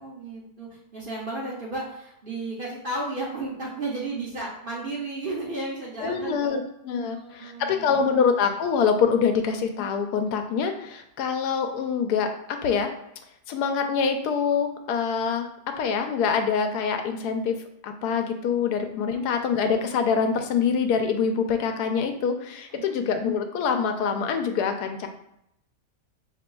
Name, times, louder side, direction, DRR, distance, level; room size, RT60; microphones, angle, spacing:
voice 1, 0.0-6.6 7.0-8.2 19.1-19.3 22.7-23.0, right 2 dB, 45° right, -4 dB, 0.7 m, -34 dB
voice 2, 6.0-12.9 13.5-15.5 15.8-17.6 17.8-25.1, left 6 dB, 85° left, 6 dB, 1.1 m, -25 dB
5.9 x 3.0 x 2.2 m, 0.79 s
omnidirectional pair, 1.7 m